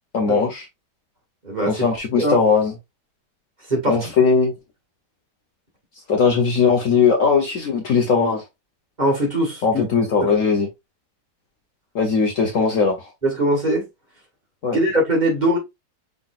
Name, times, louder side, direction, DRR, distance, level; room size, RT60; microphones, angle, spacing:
voice 1, 0.1-0.7 1.6-2.7 3.9-4.5 6.1-8.4 9.6-10.7 11.9-13.1 14.6-14.8, left 5 dB, 55° left, 1.1 m, -19 dB
voice 2, 1.4-1.8 2.2-2.4 3.7-4.0 9.0-9.9 10.2-10.3 13.2-13.9 14.7-15.6, right 1 dB, 25° right, 2.0 m, -21 dB
5.6 x 3.8 x 2.4 m
omnidirectional pair, 1.8 m